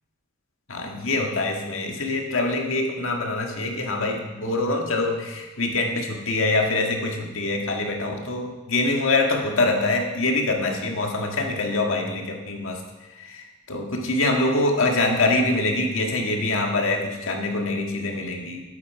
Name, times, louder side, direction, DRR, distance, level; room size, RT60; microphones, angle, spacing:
voice 1, 0.7-12.8 13.2-18.6, left 2 dB, 75° left, 1 dB, 1.8 m, -24 dB
11.5 x 8.7 x 4.8 m, 1.1 s
head